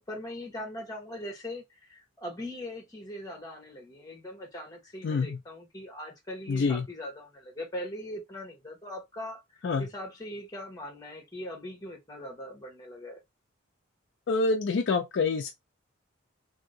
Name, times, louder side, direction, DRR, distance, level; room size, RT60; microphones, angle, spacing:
voice 1, 0.0-9.4 9.8-13.2, left 1 dB, 20° left, 1.1 m, -40 dB
voice 2, 5.0-5.4 6.5-6.8 9.6-9.9 14.3-15.5, left 4 dB, 60° left, 0.4 m, -26 dB
2.8 x 2.7 x 2.6 m
head